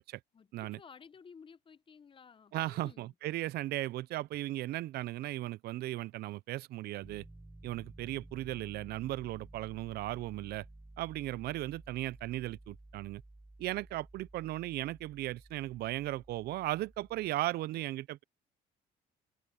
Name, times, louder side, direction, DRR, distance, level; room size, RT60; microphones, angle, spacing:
voice 1, 0.3-3.1, left 6 dB, 30° left, 0.9 m, -55 dB
voice 2, 2.5-7.2 7.6-10.6 11.0-13.2 13.6-18.2, right 16 dB, 70° right, 0.5 m, -36 dB
Piano, 7.0-17.3, right 2 dB, 10° right, 4.4 m, -54 dB
cardioid pair, 110°, 17 cm